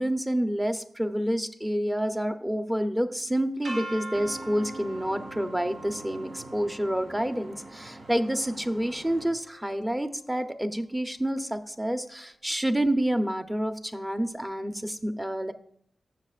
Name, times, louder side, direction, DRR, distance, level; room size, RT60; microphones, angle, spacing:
voice 1, 0.0-15.5, right 1 dB, 10° right, 7 dB, 0.8 m, -28 dB
sound 1, 3.6-9.6, right 2 dB, 75° right, 3.0 m, -43 dB
Boat Water vehicle, 4.1-9.3, right 2 dB, 55° right, 2.6 m, -45 dB
15.0 x 6.4 x 2.5 m, 0.65 s
wide cardioid pair, 85°, 0 cm